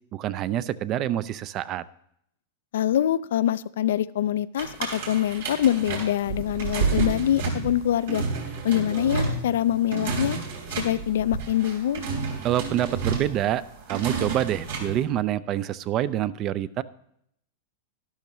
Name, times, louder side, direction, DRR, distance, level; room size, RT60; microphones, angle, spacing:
voice 1, 0.1-1.8 12.4-13.6 13.9-16.8, right 12 dB, 35° right, 17 dB, 0.4 m, -26 dB
voice 2, 2.7-8.2 8.6-10.4 10.8-12.0, left 11 dB, 80° left, 16 dB, 0.4 m, -24 dB
sound 1, 4.6-15.0, right 4 dB, 80° right, 3.3 m, -30 dB
12.0 x 12.0 x 3.1 m, 0.72 s
supercardioid pair, 140°, 0 cm